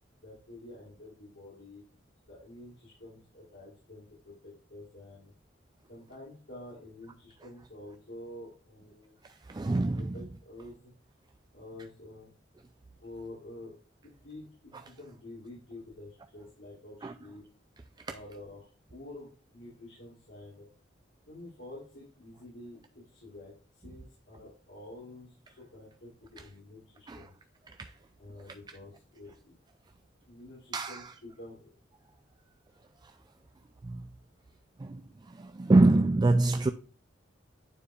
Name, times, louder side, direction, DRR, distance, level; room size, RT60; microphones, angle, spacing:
voice 1, 0.2-1.8 2.3-5.3 5.9-9.1 10.0-10.9 11.5-12.3 13.0-13.7 14.2-17.4 18.0-20.7 21.3-23.5 23.8-27.3 28.2-29.6 30.3-31.6, left 1 dB, 90° left, 3.0 m, -48 dB
voice 2, 9.5-10.1 17.0-17.1 27.1-27.3 27.8-27.9 30.7-31.1 33.8-34.0 34.8-35.0 35.3-36.7, right 2 dB, 25° right, 0.4 m, -25 dB
9.7 x 4.5 x 2.4 m
head